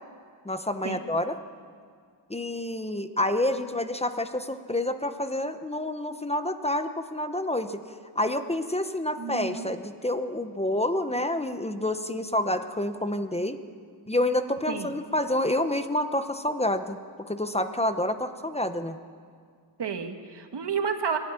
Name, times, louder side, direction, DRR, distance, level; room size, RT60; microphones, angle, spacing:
voice 1, 0.4-1.4 2.3-7.8 8.1-13.6 14.1-17.0 17.3-19.0, left 1 dB, 15° left, 8 dB, 0.8 m, -28 dB
voice 2, 9.2-9.7 14.7-14.9 19.8-21.2, right 6 dB, 80° right, 5 dB, 1.8 m, -30 dB
23.0 x 12.5 x 9.7 m, 2.1 s
wide cardioid pair, 145°, 41 cm